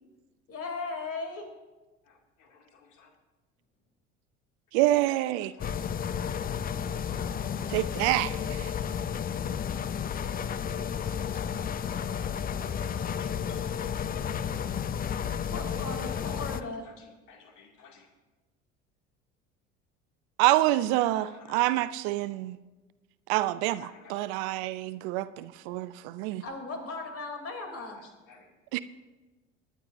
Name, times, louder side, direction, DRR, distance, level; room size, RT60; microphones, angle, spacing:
voice 1, 0.5-1.5 15.5-16.8 26.4-28.0, left 3 dB, 40° left, 3.1 m, -37 dB
voice 2, 2.0-3.1 4.8-4.9 5.4-5.9 6.8-8.1 11.0-13.9 15.5-15.7 16.1-18.1 21.1-21.6 23.8-24.1 27.7-28.5, left 5 dB, 60° left, 2.4 m, -55 dB
voice 3, 4.7-5.5 7.7-8.7 20.4-22.6 23.3-26.4 28.7-28.8, right 16 dB, 65° right, 0.6 m, -27 dB
sound 1, 5.6-16.6, left 8 dB, 25° left, 0.5 m, -32 dB
24.0 x 10.0 x 2.6 m
hypercardioid pair, 65°, 35 cm